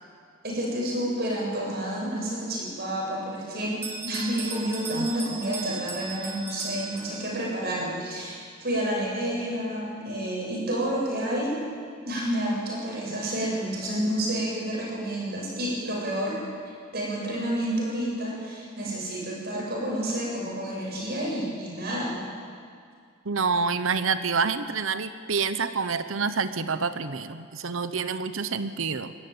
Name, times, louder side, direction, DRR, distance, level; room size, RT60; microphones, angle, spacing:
voice 1, 0.4-11.6 12.0-16.4 16.9-22.2, right 1 dB, 50° right, -3 dB, 7.1 m, -29 dB
Bell, 3.8-7.5, right 5 dB, 10° right, 1.9 m, -37 dB
voice 2, 23.2-29.1, right 5 dB, 70° right, 11 dB, 0.9 m, -27 dB
22.0 x 15.0 x 9.3 m, 2.3 s
head